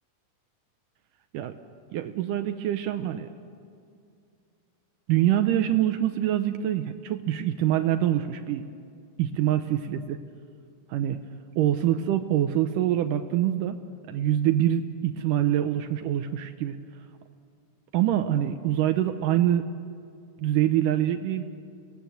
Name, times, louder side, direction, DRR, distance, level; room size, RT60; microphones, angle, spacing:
voice 1, 1.9-3.3 5.1-8.7 9.2-10.2 10.9-11.2 11.6-13.8 14.1-16.8 17.9-19.7 20.4-21.4, right 11 dB, 80° right, 8 dB, 2.2 m, -25 dB
28.5 x 18.0 x 7.7 m, 2.3 s
omnidirectional pair, 4.0 m